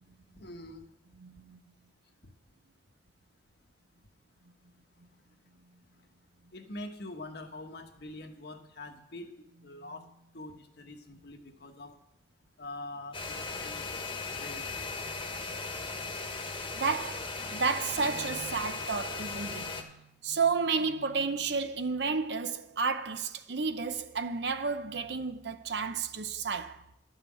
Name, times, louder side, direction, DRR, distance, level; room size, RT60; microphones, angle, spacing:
voice 1, 0.4-0.8 6.5-9.3 9.6-10.0 10.3-11.9 12.6-13.8 14.3-14.6, left 2 dB, 60° left, 1.2 m, -44 dB
voice 2, 1.2-1.6 16.7-26.8, right 5 dB, 60° right, 0.7 m, -32 dB
sound 1, 13.1-19.8, left 4 dB, 30° left, 1.2 m, -37 dB
12.0 x 5.8 x 8.4 m
head